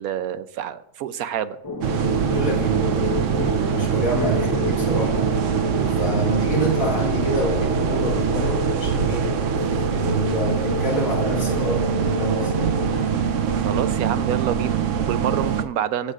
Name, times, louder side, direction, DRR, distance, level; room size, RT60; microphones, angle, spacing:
voice 1, 0.0-1.6 13.5-16.1, right 10 dB, 90° right, 12 dB, 1.1 m, -27 dB
sound 1, 1.6-13.0, left 2 dB, 20° left, 0.8 m, -30 dB
sound 2, 1.8-15.6, right 7 dB, 65° right, 1.0 m, -23 dB
voice 2, 2.2-3.3 3.6-5.3 6.0-9.3 9.9-12.7, equal, 70° left, -2 dB, 3.6 m, -27 dB
23.0 x 8.3 x 2.5 m, 0.79 s
omnidirectional pair, 1.5 m